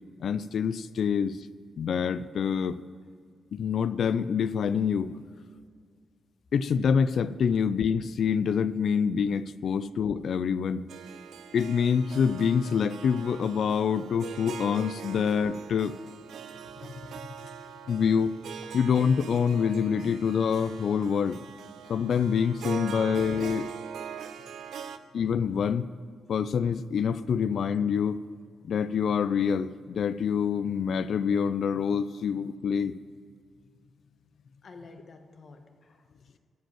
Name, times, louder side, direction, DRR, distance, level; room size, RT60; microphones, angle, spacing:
voice 1, 0.2-1.4 1.8-2.8 3.5-5.2 6.5-10.8 11.5-15.9 17.9-18.3 18.7-21.4 21.9-23.7 25.1-25.9 26.3-28.2 28.6-32.9, left 7 dB, 60° left, 15 dB, 0.4 m, -26 dB
Harp, 10.9-25.0, right 8 dB, 85° right, 0.6 m, -42 dB
voice 2, 34.6-36.4, left 3 dB, 45° left, 5 dB, 1.2 m, -51 dB
14.0 x 5.2 x 8.7 m, 2.1 s
wide cardioid pair, 150°, 0 cm